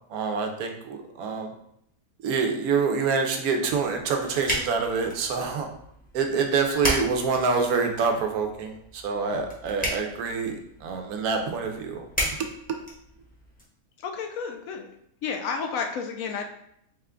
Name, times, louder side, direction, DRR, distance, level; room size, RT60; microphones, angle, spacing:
voice 1, 0.1-1.5 2.2-5.7 6.1-10.6 10.8-12.0 12.4-12.8, right 5 dB, 85° right, 4 dB, 1.1 m, -26 dB
sound 1, 3.7-13.6, equal, 5° left, 0.7 m, -35 dB
voice 2, 14.0-14.9 15.2-16.4, left 5 dB, 75° left, 3 dB, 0.9 m, -31 dB
4.0 x 2.2 x 3.6 m, 0.72 s
omnidirectional pair, 1.5 m